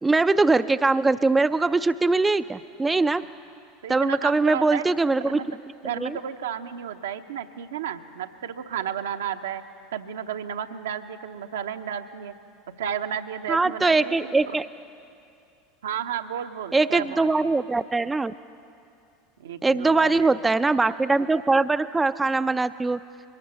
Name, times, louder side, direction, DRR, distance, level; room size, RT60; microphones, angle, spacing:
voice 1, 0.0-3.2 3.9-5.4 6.0-6.2 13.5-14.7 16.7-18.3 19.6-23.0, right 3 dB, 15° right, 11 dB, 0.4 m, -22 dB
voice 2, 3.8-4.9 5.3-5.5 5.8-9.6 9.9-12.3 12.8-14.6 15.8-17.5 19.4-20.6, right 9 dB, 70° right, 7 dB, 0.8 m, -33 dB
22.0 x 18.0 x 7.0 m, 2.6 s
figure-of-eight pair, 80°, 0 cm